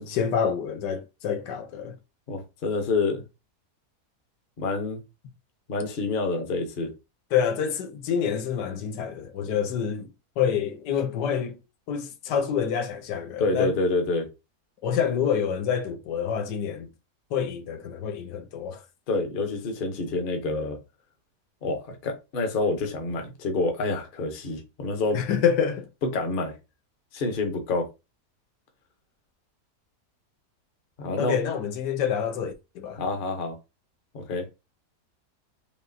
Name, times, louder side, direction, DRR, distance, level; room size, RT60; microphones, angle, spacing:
voice 1, 0.0-1.9 7.3-10.1 10.4-11.6 11.9-13.7 14.8-16.9 17.3-18.8 25.1-25.9 31.2-33.0, left 7 dB, 85° left, 1.3 m, -27 dB
voice 2, 2.3-3.2 4.6-5.0 5.7-6.9 13.4-14.3 19.1-20.8 21.6-25.2 26.1-26.5 27.1-27.9 31.0-31.4 33.0-33.6 34.1-34.5, left 3 dB, 40° left, 0.8 m, -27 dB
5.0 x 2.9 x 2.7 m
omnidirectional pair, 1.8 m